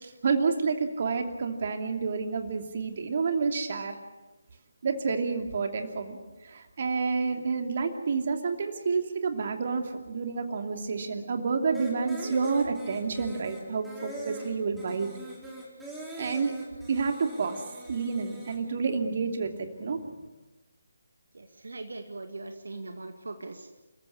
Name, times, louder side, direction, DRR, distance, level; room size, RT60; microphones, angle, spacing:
voice 1, 0.0-3.9 4.8-6.2 6.4-15.1 16.2-16.5 16.9-17.6 17.9-20.0, right 4 dB, 45° right, 5 dB, 2.7 m, -29 dB
sound 1, 11.7-18.6, right 1 dB, 5° right, 4.9 m, -43 dB
voice 2, 21.3-23.8, right 2 dB, 70° right, 5 dB, 2.0 m, -41 dB
29.0 x 14.5 x 8.5 m, 1.2 s
figure-of-eight pair, 150°, 0 cm